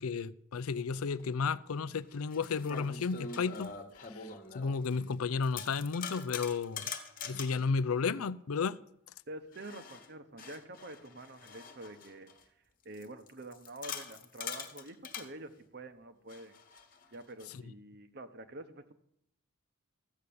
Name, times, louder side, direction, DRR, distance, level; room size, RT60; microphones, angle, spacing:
voice 1, 0.0-3.7 4.1-4.3 4.5-6.9 7.2-8.8 17.5-17.6, left 5 dB, 85° left, 0.5 m, -33 dB
sound 1, 1.2-1.3 2.0-5.1 5.4-7.7 9.5-12.4 12.9-15.3 16.3-17.5, left 6 dB, 40° left, 1.3 m, -44 dB
voice 2, 9.3-12.3 12.8-16.6 17.1-18.9, right 2 dB, 50° right, 0.9 m, -47 dB
14.0 x 6.6 x 8.5 m
head